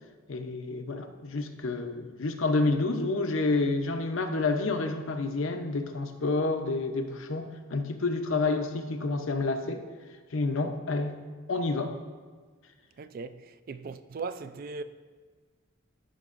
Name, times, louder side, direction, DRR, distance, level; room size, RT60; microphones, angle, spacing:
voice 1, 0.3-9.8 10.3-11.1 11.5-12.0, left 3 dB, 70° left, 0.7 m, -29 dB
voice 2, 13.0-14.8, right 4 dB, 45° right, 0.3 m, -38 dB
13.5 x 6.0 x 2.5 m
head